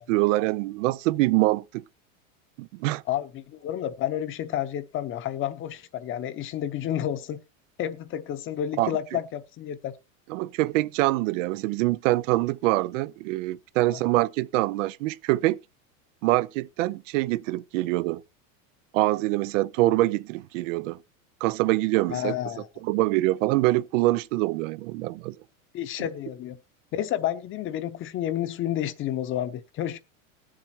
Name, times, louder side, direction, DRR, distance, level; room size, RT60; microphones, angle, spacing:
voice 1, 0.0-1.6 2.6-3.0 8.8-8.9 10.3-15.6 16.2-18.2 18.9-21.0 21.4-22.3 22.8-25.3, right 18 dB, 65° right, 0.6 m, -24 dB
voice 2, 3.1-7.4 7.8-9.9 13.9-14.0 22.1-22.7 25.7-26.6 26.9-30.0, left 11 dB, 30° left, 0.8 m, -30 dB
20.0 x 7.6 x 2.9 m
supercardioid pair, 145°, 40 cm